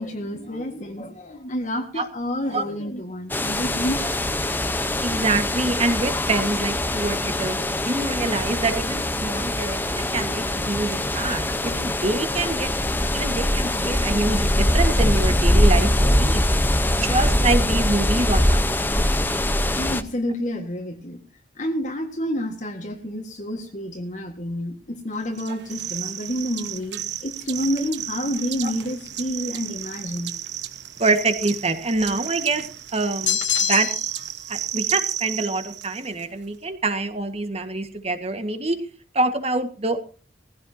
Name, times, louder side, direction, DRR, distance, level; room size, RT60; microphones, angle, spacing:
voice 1, 0.0-4.2 17.0-17.1 19.8-21.2 21.6-30.3, equal, 45° left, 2 dB, 1.8 m, -29 dB
sound 1, 3.3-20.0, left 1 dB, 10° left, 0.9 m, -22 dB
voice 2, 5.0-7.6 7.8-12.7 13.1-16.5 16.9-18.6 28.6-28.7 31.0-32.7 32.9-33.9 34.5-38.8 39.1-40.0, right 2 dB, 35° right, 8 dB, 1.7 m, -25 dB
sound 2, 25.4-36.3, right 11 dB, 70° right, 1.3 m, -33 dB
sound 3, 33.3-34.3, left 12 dB, 90° left, 1.1 m, -24 dB
20.0 x 15.5 x 2.8 m, 0.37 s
head